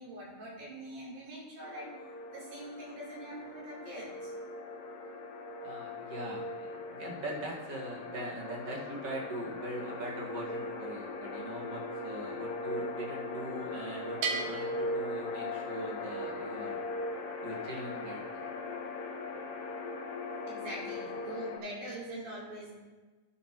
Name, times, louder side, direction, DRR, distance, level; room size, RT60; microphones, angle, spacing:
voice 1, 0.0-1.9 2.3-4.3 20.5-22.8, right 1 dB, 70° right, -7 dB, 5.5 m, -43 dB
sound 1, 1.6-21.6, left 2 dB, 60° left, 2.1 m, -39 dB
voice 2, 5.6-16.8 17.4-18.4, right 1 dB, 50° right, -3 dB, 2.5 m, -41 dB
Bell, 14.2-15.9, right 5 dB, 90° right, 3.1 m, -37 dB
12.5 x 10.5 x 3.1 m, 1.2 s
omnidirectional pair, 4.3 m